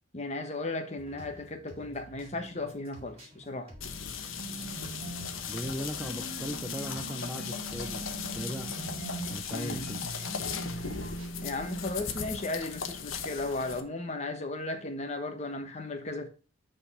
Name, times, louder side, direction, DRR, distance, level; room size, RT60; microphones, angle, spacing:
voice 1, 0.1-3.7 9.5-9.9 11.4-16.3, left 2 dB, 35° left, 1.2 m, -35 dB
sound 1, 1.0-11.3, right 1 dB, 30° right, 2.0 m, -51 dB
sound 2, 3.8-13.8, left 5 dB, 90° left, 1.0 m, -37 dB
sound 3, 4.4-5.5 6.0-11.2, right 2 dB, 65° right, 0.7 m, -43 dB
voice 2, 5.5-8.7 9.3-10.0, equal, 5° right, 0.5 m, -38 dB
8.8 x 4.0 x 5.5 m
head